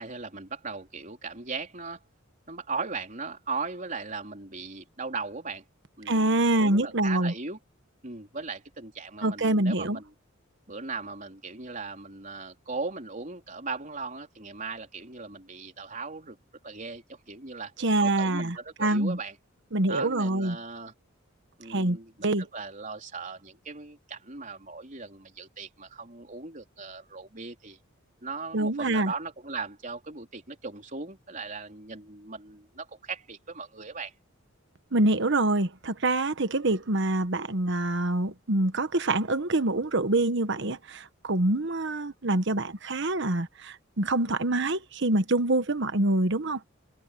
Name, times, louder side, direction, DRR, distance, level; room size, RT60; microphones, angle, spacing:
voice 1, 0.0-2.0 2.5-5.6 6.0-7.6 8.0-10.1 10.7-16.4 16.6-17.7 18.0-19.4 19.9-20.9 21.6-27.8 28.2-34.1, right 4 dB, 40° right, 4.0 m, -38 dB
voice 2, 6.1-7.3 9.2-10.0 17.8-19.2 19.7-20.6 21.7-22.4 28.5-29.1 34.9-46.6, right 2 dB, 60° right, 1.3 m, -25 dB
head